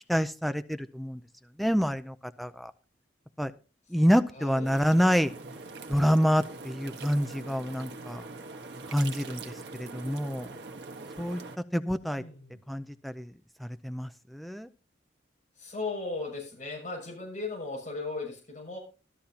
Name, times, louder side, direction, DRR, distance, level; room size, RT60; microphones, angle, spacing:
voice 1, 0.1-1.2 1.6-2.7 3.4-3.5 3.9-5.3 5.9-8.2 8.9-10.5 11.2-11.4 11.7-12.2 12.7-13.3 13.6-14.7, equal, ahead, 10 dB, 0.5 m, -27 dB
voice 2, 4.3-4.7 12.1-12.6 15.6-18.8, left 3 dB, 40° left, -2 dB, 6.5 m, -37 dB
sound 1, 4.6-11.6, right 3 dB, 60° right, 1.5 m, -43 dB
13.5 x 13.0 x 2.8 m, 0.34 s
head